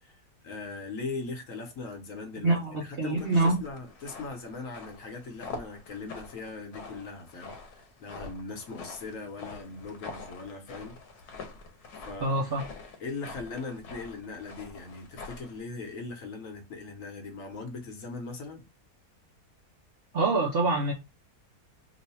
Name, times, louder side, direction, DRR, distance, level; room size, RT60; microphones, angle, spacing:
voice 1, 0.0-11.0 12.0-12.5 13.0-18.6, left 3 dB, 60° left, 1.2 m, -40 dB
voice 2, 2.4-3.6 12.2-12.6 20.1-20.9, right 2 dB, 60° right, 0.6 m, -25 dB
sound 1, 3.2-15.6, left 4 dB, 85° left, 1.3 m, -45 dB
3.0 x 2.2 x 4.2 m
omnidirectional pair, 1.6 m